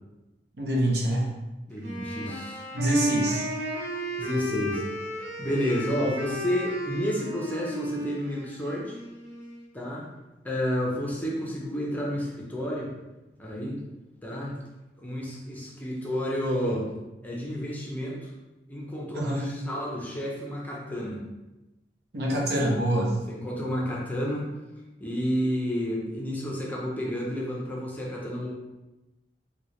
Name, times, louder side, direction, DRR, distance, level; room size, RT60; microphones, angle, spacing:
voice 1, 0.6-1.3 2.7-3.5 19.1-19.5 22.1-23.2, right 1 dB, 65° right, -2 dB, 0.8 m, -25 dB
voice 2, 1.7-2.6 4.2-4.8 5.4-9.0 9.7-10.0 10.4-12.9 13.4-13.8 14.2-14.6 15.0-16.9 17.2-18.3 18.7-21.2 23.3-24.5 25.0-28.5, equal, 10° left, -3 dB, 0.7 m, -30 dB
Wind instrument woodwind instrument, 1.8-9.7, right 1 dB, 90° right, 1.0 m, -33 dB
4.5 x 2.3 x 3.2 m, 1.0 s
head